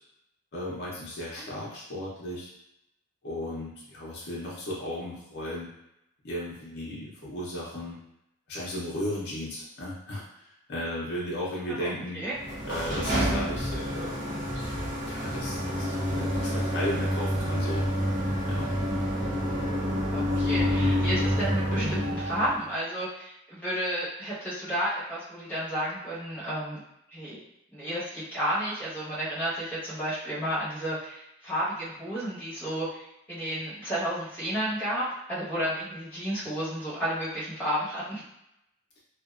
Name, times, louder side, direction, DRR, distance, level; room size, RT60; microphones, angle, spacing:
voice 1, 0.5-2.5 3.2-5.7 6.2-8.0 8.5-12.2 12.6-14.3 15.1-17.9 18.4-18.7, left 1 dB, 50° left, -5 dB, 0.7 m, -35 dB
voice 2, 11.8-12.3 20.1-26.8 27.1-27.4 27.7-38.2, equal, 10° left, -11 dB, 1.1 m, -32 dB
sound 1, 12.3-22.6, equal, 35° right, 0.6 m, -28 dB
2.5 x 2.2 x 2.4 m, 0.82 s
head